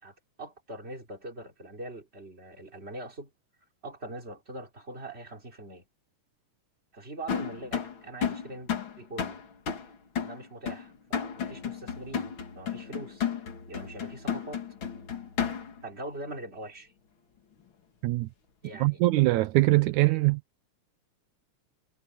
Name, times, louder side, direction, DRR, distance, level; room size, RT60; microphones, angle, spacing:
voice 1, 0.0-3.3 3.8-5.9 6.9-8.7 9.0-9.5 10.2-13.3 13.7-14.7 15.8-16.9 18.6-19.1, right 1 dB, 20° right, 3.9 m, -42 dB
sound 1, 7.3-15.9, left 7 dB, 45° left, 2.4 m, -33 dB
voice 2, 18.8-20.4, right 19 dB, 80° right, 2.1 m, -22 dB
omnidirectional pair, 3.4 m